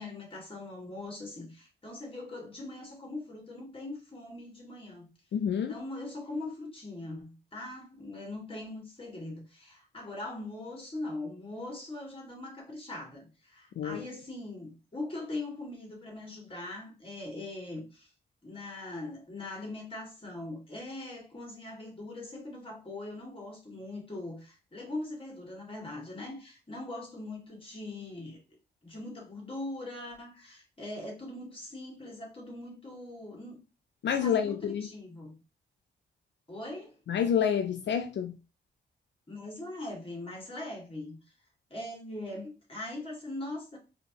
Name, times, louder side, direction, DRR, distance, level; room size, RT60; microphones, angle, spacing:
voice 1, 0.0-5.1 5.7-18.1 18.4-28.4 28.8-33.6 34.1-35.4 36.5-37.0 39.3-41.2 41.7-43.8, left 2 dB, 30° left, 2.0 m, -41 dB
voice 2, 5.3-5.8 13.8-14.0 34.0-34.9 37.1-38.4, left 8 dB, 80° left, 0.4 m, -28 dB
4.2 x 2.8 x 2.9 m
cardioid pair, 75°, 18 cm